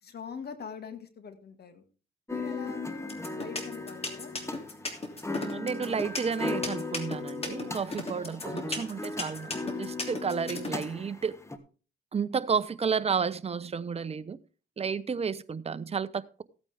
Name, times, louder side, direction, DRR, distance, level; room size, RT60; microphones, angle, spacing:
voice 1, 0.0-1.8 2.3-4.4, left 6 dB, 55° left, 9 dB, 2.0 m, -42 dB
sound 1, 2.3-11.6, left 3 dB, 15° left, 1.4 m, -37 dB
sound 2, 3.1-10.8, left 2 dB, 30° left, 2.9 m, -34 dB
voice 2, 5.4-11.4 12.1-14.4 14.8-16.4, right 6 dB, 30° right, 13 dB, 0.8 m, -32 dB
15.0 x 8.9 x 3.6 m, 0.37 s
cardioid pair, 90°, 20 cm